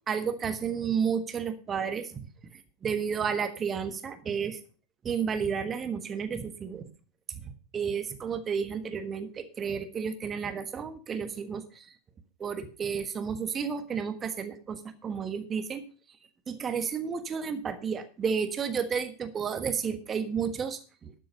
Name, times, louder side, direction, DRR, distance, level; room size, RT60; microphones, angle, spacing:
voice 1, 0.1-2.3 2.8-4.6 5.0-6.9 7.3-11.9 12.4-15.8 16.5-21.1, right 6 dB, 20° right, 10 dB, 1.4 m, -32 dB
12.0 x 7.7 x 5.5 m, 0.35 s
figure-of-eight pair, 90°, 0 cm